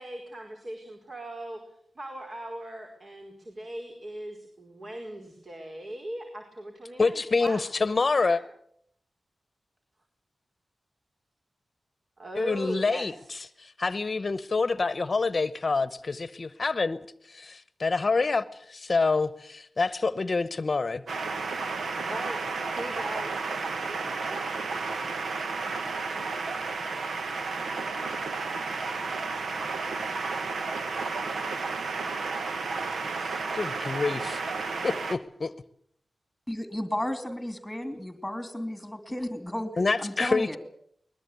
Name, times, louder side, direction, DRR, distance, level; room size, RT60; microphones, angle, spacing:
voice 1, 0.0-7.6 8.1-8.4 12.2-13.4 21.9-22.4 22.7-23.4 23.8-24.5, right 1 dB, 50° right, 5.0 m, -39 dB
voice 2, 7.0-8.4 12.3-17.0 17.3-21.0 33.2-34.4 34.8-35.5 39.8-40.6, left 4 dB, 45° left, 1.0 m, -27 dB
sound 1, 21.1-35.2, right 4 dB, 85° right, 1.7 m, -32 dB
voice 3, 36.5-39.7 40.0-40.6, left 1 dB, 5° left, 3.0 m, -33 dB
21.5 x 21.0 x 8.3 m
wide cardioid pair, 90°, 0 cm